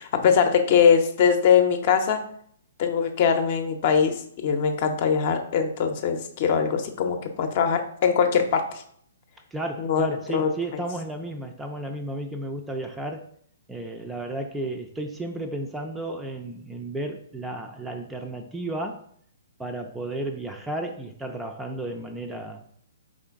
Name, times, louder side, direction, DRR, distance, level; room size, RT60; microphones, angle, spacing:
voice 1, 0.0-2.2 2.8-8.8 9.8-10.1 10.3-10.5, left 7 dB, 45° left, 6 dB, 0.6 m, -22 dB
voice 2, 9.5-13.2 13.7-19.0 19.6-22.6, right 1 dB, 10° right, 4 dB, 0.4 m, -33 dB
5.0 x 3.7 x 2.4 m, 0.63 s
figure-of-eight pair, 125°, 0 cm